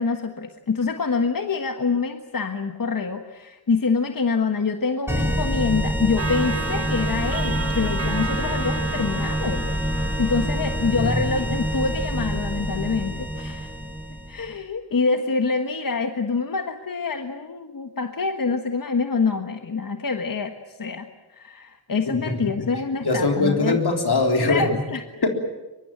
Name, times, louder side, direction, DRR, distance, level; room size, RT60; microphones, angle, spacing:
voice 1, 0.0-9.6 10.2-13.7 14.3-23.8 24.3-25.2, left 4 dB, 60° left, 6 dB, 1.5 m, -26 dB
sound 1, 5.1-14.5, equal, 5° right, 4.6 m, -26 dB
Clock, 6.2-12.1, right 4 dB, 35° right, 1.9 m, -34 dB
voice 2, 22.1-22.4 23.0-24.6 25.2-25.3, left 3 dB, 80° left, 3 dB, 3.9 m, -22 dB
23.5 x 23.0 x 9.0 m, 1.1 s
wide cardioid pair, 80°, 38 cm